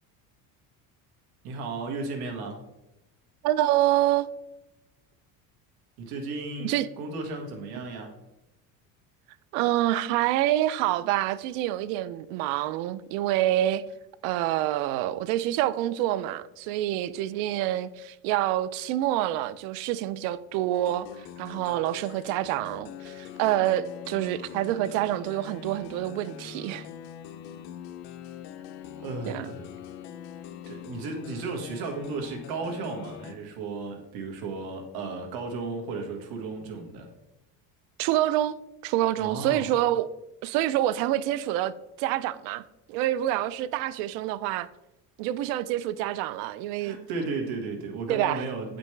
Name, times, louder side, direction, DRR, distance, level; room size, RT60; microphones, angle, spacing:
voice 1, 1.4-2.6 6.0-6.7 7.0-8.1 29.0-29.7 30.7-37.1 39.2-39.7 46.8-48.8, right 3 dB, 70° right, 1.6 m, -34 dB
voice 2, 3.4-4.3 6.6-6.9 9.5-13.8 14.2-26.9 29.3-29.5 38.0-38.6 38.8-40.1 40.4-41.7 42.0-42.6 42.9-44.7 45.2-47.0 48.1-48.4, right 14 dB, 90° right, 0.5 m, -27 dB
sound 1, 20.7-33.3, left 9 dB, 80° left, 0.7 m, -43 dB
8.2 x 5.2 x 3.2 m
cardioid pair, 135°, 38 cm